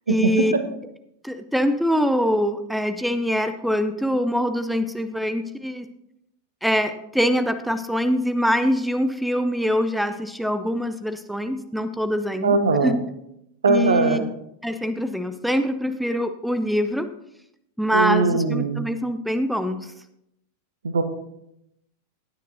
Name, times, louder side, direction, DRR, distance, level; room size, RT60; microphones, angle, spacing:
voice 1, 0.1-0.5 1.2-5.9 6.6-12.6 12.8-13.0 13.7-14.3 14.6-17.1 17.8-19.9, equal, ahead, 10 dB, 0.6 m, -24 dB
voice 2, 12.4-12.9 13.6-14.2 17.9-18.8 20.8-21.0, right 4 dB, 70° right, 9 dB, 1.1 m, -20 dB
16.5 x 9.4 x 2.7 m, 0.80 s
figure-of-eight pair, 90°, 0 cm